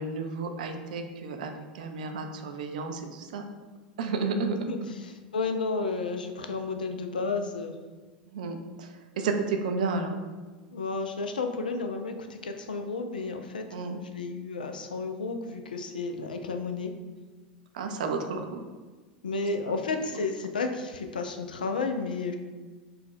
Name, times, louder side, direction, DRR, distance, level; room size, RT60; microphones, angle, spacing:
voice 1, 0.0-3.5 4.0-4.7 8.3-10.2 13.7-14.0 17.7-18.6 19.7-19.8 20.1-20.2, right 4 dB, 60° right, 5 dB, 0.4 m, -32 dB
voice 2, 4.6-7.8 10.7-16.9 18.3-18.4 19.2-22.4, left 4 dB, 75° left, 6 dB, 0.4 m, -32 dB
4.1 x 2.2 x 3.7 m, 1.3 s
figure-of-eight pair, 80°, 5 cm